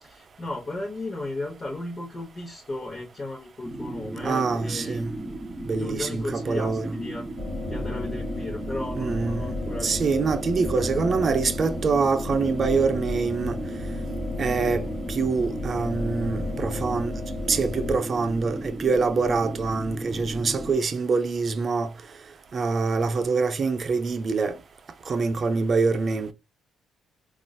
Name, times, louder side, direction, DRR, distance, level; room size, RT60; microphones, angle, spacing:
voice 1, 0.0-5.4 5.8-7.3 7.7-10.1, left 2 dB, 35° left, 0.9 m, -35 dB
sound 1, 3.6-20.8, right 1 dB, ahead, 0.9 m, -36 dB
voice 2, 4.2-5.1 5.7-6.8 9.0-9.4 9.8-13.6 14.4-17.1 17.5-21.9 22.5-24.6 25.1-26.3, right 4 dB, 45° right, 0.5 m, -25 dB
sound 2, 7.4-18.0, left 2 dB, 85° left, 0.7 m, -33 dB
3.8 x 2.4 x 2.3 m
cardioid pair, 90°, 0 cm